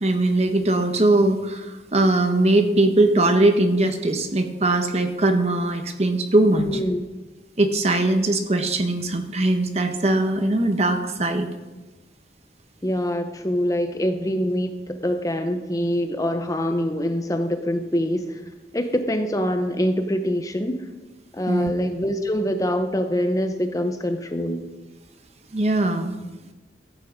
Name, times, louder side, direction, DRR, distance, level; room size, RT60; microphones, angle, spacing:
voice 1, 0.0-6.7 7.6-11.5 21.5-21.7 25.5-26.2, right 2 dB, 35° right, 7 dB, 0.9 m, -20 dB
voice 2, 6.5-7.0 12.8-14.7 15.0-18.4 18.7-20.9 21.3-24.7, equal, 20° left, 7 dB, 0.7 m, -24 dB
13.5 x 8.4 x 5.0 m, 1.1 s
head